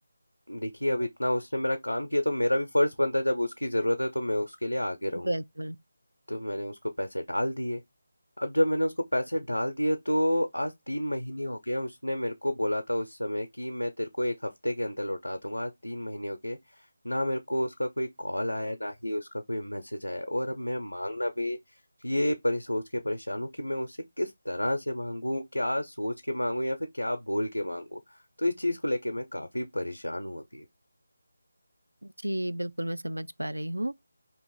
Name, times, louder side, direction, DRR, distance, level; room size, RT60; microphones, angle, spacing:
voice 1, 0.5-5.3 6.3-7.8 8.4-21.6 22.0-30.7, left 1 dB, 85° left, 0.5 m, -30 dB
voice 2, 5.1-5.8 32.2-33.9, right 1 dB, 80° right, 0.3 m, -32 dB
2.8 x 2.5 x 3.7 m
figure-of-eight pair, 160°, 0 cm